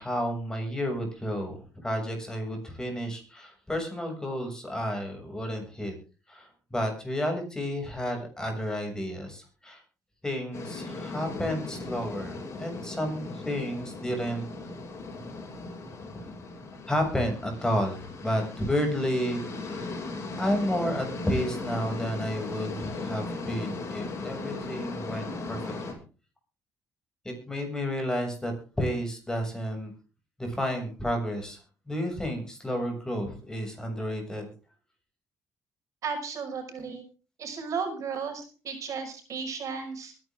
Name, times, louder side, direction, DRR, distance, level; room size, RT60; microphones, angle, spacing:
voice 1, 0.0-5.9 6.3-9.8 10.2-14.4 16.9-19.9 20.4-26.0 27.2-29.9 30.4-31.6 31.9-34.5, equal, 10° left, 3 dB, 6.9 m, -31 dB
sound 1, 10.5-25.9, left 3 dB, 45° left, 6.6 m, -37 dB
voice 2, 36.0-37.0 37.4-40.1, right 5 dB, 55° right, 3 dB, 5.8 m, -34 dB
22.5 x 10.5 x 3.8 m, 0.35 s
cardioid pair, 115°, 6 cm